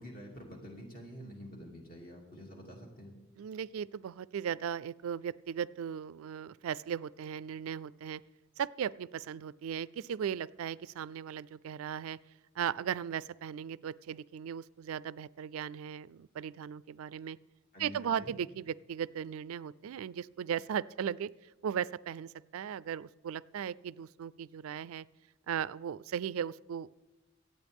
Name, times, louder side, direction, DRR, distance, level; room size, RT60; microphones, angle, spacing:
voice 1, 0.0-3.2 17.7-18.3, equal, 40° left, 0 dB, 2.6 m, -48 dB
voice 2, 3.4-8.2 8.6-12.2 12.6-17.4 17.8-21.3 21.6-25.1 25.5-26.9, right 8 dB, 85° right, 20 dB, 0.3 m, -37 dB
24.0 x 8.7 x 3.5 m, 1.1 s
head